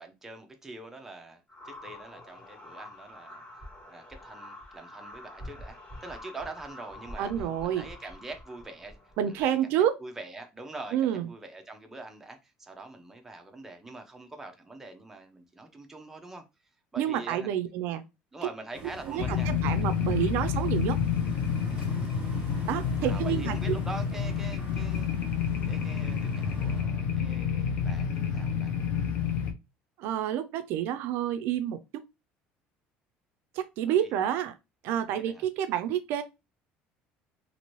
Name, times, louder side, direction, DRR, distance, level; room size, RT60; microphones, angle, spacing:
voice 1, 0.0-16.4 16.9-17.5 18.3-19.5 23.0-28.7 33.9-34.3 35.1-35.5, right 2 dB, 10° right, 0.5 m, -44 dB
sound 1, 1.5-9.5, left 1 dB, 30° left, 1.2 m, -46 dB
voice 2, 7.2-7.8 9.2-10.0 10.9-11.3 17.0-18.0 19.0-21.0 22.7-23.8 30.0-32.0 33.5-34.6 34.8-36.2, right 10 dB, 65° right, 0.3 m, -29 dB
sound 2, 18.7-26.8, right 2 dB, 25° right, 1.3 m, -46 dB
sound 3, 19.2-29.5, left 7 dB, 50° left, 0.6 m, -29 dB
2.8 x 2.5 x 3.0 m
cardioid pair, 140°, 4 cm